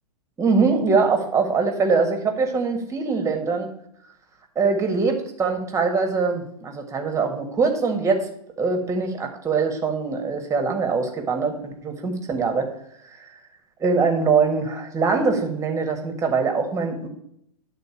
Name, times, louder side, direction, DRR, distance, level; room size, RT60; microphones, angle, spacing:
voice 1, 0.4-3.7 4.5-8.3 8.6-12.7 13.8-17.1, right 4 dB, 15° right, 4 dB, 1.5 m, -23 dB
10.5 x 4.0 x 7.1 m, 0.73 s
hypercardioid pair, 115°, 20 cm